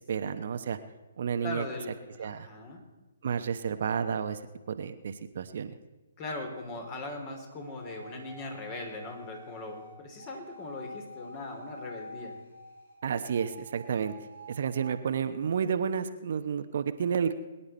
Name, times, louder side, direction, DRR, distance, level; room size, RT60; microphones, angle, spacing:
voice 1, 0.1-0.8 1.2-1.6 2.2-2.5 3.2-4.4 4.7-5.7 13.0-14.1 14.5-17.3, right 7 dB, 55° right, 9 dB, 0.9 m, -31 dB
voice 2, 1.4-2.8 6.2-12.3, left 2 dB, 30° left, 3 dB, 3.2 m, -40 dB
sound 1, 7.5-12.9 13.2-14.9, equal, 70° left, 5.8 m, -48 dB
22.5 x 10.0 x 4.4 m, 1.1 s
figure-of-eight pair, 130°, 0 cm